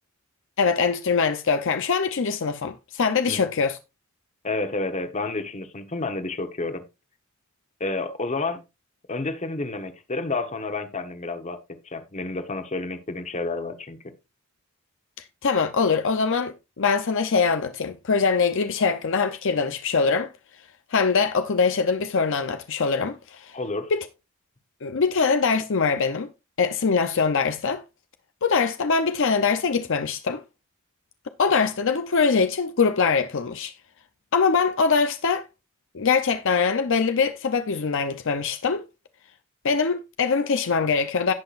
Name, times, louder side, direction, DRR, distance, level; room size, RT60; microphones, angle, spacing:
voice 1, 0.6-3.8 15.4-20.3 20.9-23.5 23.9-24.1 24.8-26.3 26.6-27.8 28.4-30.4 31.4-33.7 34.3-35.5 35.9-38.8 39.6-41.3, left 5 dB, 65° left, 0.7 m, -23 dB
voice 2, 4.4-6.8 7.8-8.6 9.1-11.6 11.8-14.0 23.5-23.9, left 3 dB, 35° left, 1.1 m, -30 dB
17.0 x 5.8 x 2.5 m
head